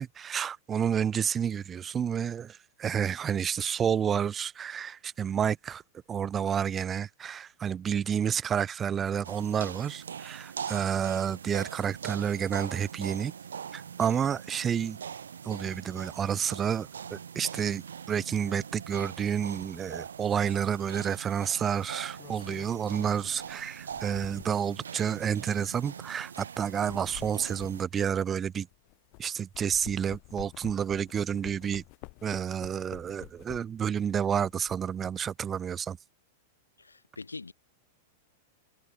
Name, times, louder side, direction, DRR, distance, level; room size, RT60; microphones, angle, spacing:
voice 1, 0.0-5.8 6.1-13.3 13.7-15.0 15.4-28.7 29.2-31.8 32.2-36.0, right 8 dB, 25° right, 0.7 m, -30 dB
sound 1, 9.2-27.8, right 7 dB, 75° right, 0.3 m, -42 dB
sound 2, 22.2-24.7 25.4-25.6 26.6-29.2 29.5-33.9 34.3-35.1, left 33 dB, 45° left, 1.3 m, -49 dB
voice 2, 36.8-37.5, left 3 dB, 85° left, 0.4 m, -43 dB
figure-of-eight pair, 95°, 0 cm